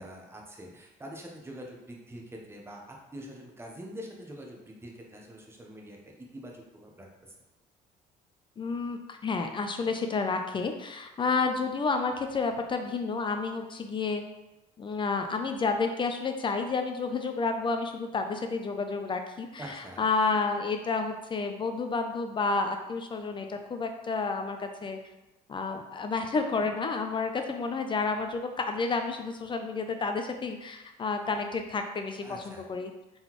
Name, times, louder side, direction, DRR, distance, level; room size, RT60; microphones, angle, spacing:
voice 1, 0.0-7.1 19.6-20.0 32.2-32.7, equal, 15° right, 0 dB, 0.8 m, -45 dB
voice 2, 8.6-14.2 14.8-25.0 25.5-32.9, left 4 dB, 30° left, 5 dB, 0.4 m, -30 dB
3.8 x 3.8 x 3.0 m, 0.96 s
cardioid pair, 110°, 17 cm